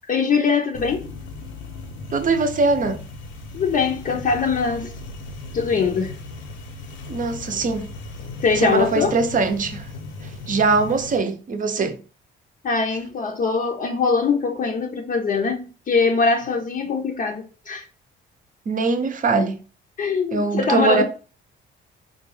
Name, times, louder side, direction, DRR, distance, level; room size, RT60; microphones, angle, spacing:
voice 1, 0.1-1.1 3.5-5.0 5.5-6.2 8.4-9.2 12.6-17.9 20.0-21.0, left 5 dB, 45° left, 0.6 m, -22 dB
sound 1, 0.7-11.2, left 3 dB, 90° left, 0.7 m, -37 dB
voice 2, 2.1-3.0 7.1-7.9 8.6-9.9 10.5-12.0 18.7-19.6 20.3-21.0, right 3 dB, 40° right, 0.6 m, -21 dB
3.7 x 2.2 x 3.1 m
cardioid pair, 90°, 20 cm